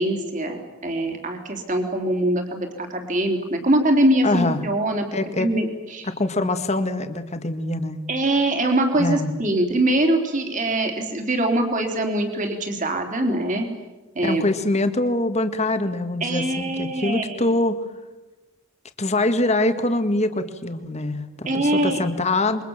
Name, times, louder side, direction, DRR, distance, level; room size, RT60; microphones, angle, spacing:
voice 1, 0.0-5.1 5.4-6.1 8.1-13.7 14.1-14.4 16.2-17.5 21.5-22.0, right 1 dB, 35° right, 4 dB, 3.8 m, -23 dB
voice 2, 4.2-4.6 5.1-5.5 6.1-8.0 9.0-9.3 14.2-17.8 19.0-22.6, left 2 dB, 30° left, 8 dB, 1.7 m, -24 dB
28.0 x 23.5 x 7.4 m, 1.2 s
head